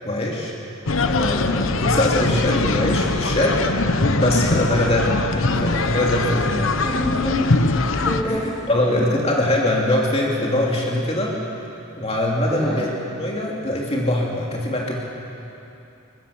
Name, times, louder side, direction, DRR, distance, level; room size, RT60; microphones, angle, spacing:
voice 1, 0.0-0.5 1.0-3.6 4.0-6.8 8.2-11.3 12.0-12.9 13.2-15.1, left 1 dB, 30° left, -2 dB, 2.9 m, -22 dB
sound 1, 0.9-8.2, left 3 dB, 75° left, 1.0 m, -22 dB
voice 2, 6.8-7.6 7.9-8.4 12.5-12.8, left 1 dB, 5° left, -10 dB, 4.4 m, -26 dB
23.5 x 20.5 x 7.1 m, 2.8 s
head